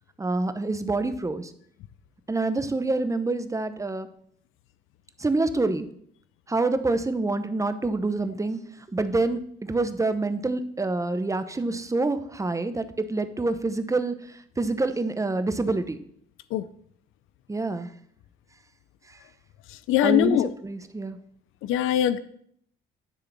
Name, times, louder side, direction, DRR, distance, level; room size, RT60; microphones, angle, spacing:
voice 1, 0.2-1.5 2.3-4.1 5.2-5.9 6.5-8.6 8.9-14.1 14.6-16.0 17.5-17.9 20.0-21.2, right 3 dB, 15° right, 10 dB, 0.8 m, -26 dB
voice 2, 19.9-20.5 21.6-22.2, left 12 dB, 85° left, 14 dB, 0.5 m, -22 dB
10.0 x 3.8 x 7.2 m, 0.66 s
cardioid pair, 90°, 20 cm